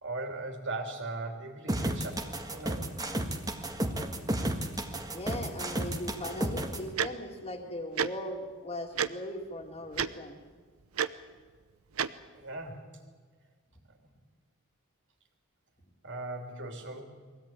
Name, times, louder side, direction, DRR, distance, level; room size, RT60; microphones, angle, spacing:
voice 1, 0.0-2.9 12.3-12.9 16.0-17.0, right 2 dB, 60° right, 3 dB, 3.4 m, -38 dB
sound 1, 1.7-6.8, right 1 dB, 15° right, 1.7 m, -32 dB
voice 2, 5.1-10.4, left 1 dB, 30° left, 1 dB, 2.4 m, -39 dB
Tick-tock, 7.0-7.1 8.0-8.1 9.0-9.1 9.9-10.1 11.0-11.1 12.0-12.1, right 8 dB, 80° right, 0.8 m, -28 dB
22.5 x 17.0 x 9.1 m, 1.5 s
head